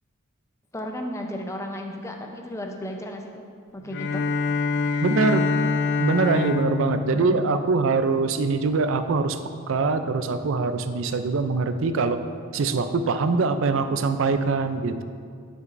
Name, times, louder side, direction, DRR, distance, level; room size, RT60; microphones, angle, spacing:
voice 1, 0.7-3.4 3.7-4.2 7.1-7.5, equal, 15° left, 2 dB, 0.6 m, -34 dB
Bowed string instrument, 3.9-8.3, left 4 dB, 55° left, 0.4 m, -26 dB
voice 2, 5.0-5.5 6.0-9.4 9.7-12.2 12.5-15.0, right 4 dB, 65° right, 9 dB, 0.4 m, -23 dB
10.5 x 6.3 x 2.6 m, 2.2 s
head